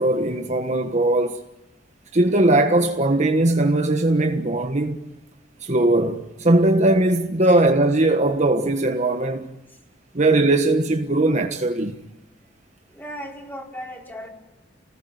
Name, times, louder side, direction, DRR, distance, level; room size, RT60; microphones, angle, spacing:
voice 1, 0.0-1.4 2.1-5.0 5.6-9.5 10.1-12.0, right 2 dB, 40° right, 1.4 m, -19 dB
voice 2, 12.9-14.3, equal, 10° left, 5.0 m, -36 dB
29.0 x 20.0 x 9.4 m
head